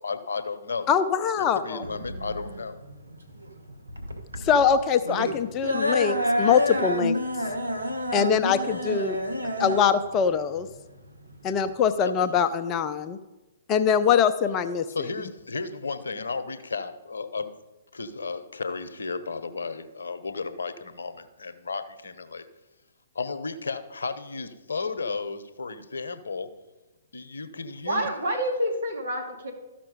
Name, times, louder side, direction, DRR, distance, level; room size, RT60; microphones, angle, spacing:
voice 1, 0.0-1.0 1.4-2.8 12.0-12.1 14.9-17.5 17.9-22.5 23.1-26.5 27.1-28.1, left 4 dB, 70° left, 11 dB, 0.8 m, -33 dB
voice 2, 0.9-1.8 4.4-7.2 8.1-9.2 9.6-10.7 11.4-13.2 13.7-14.8, left 7 dB, 25° left, 10 dB, 0.5 m, -23 dB
sound 1, 1.8-11.8, left 1 dB, 85° right, 1.2 m, -29 dB
voice 3, 27.8-29.5, equal, 60° right, 2 dB, 2.4 m, -28 dB
13.5 x 5.9 x 5.0 m, 1.1 s
figure-of-eight pair, 120°, 0 cm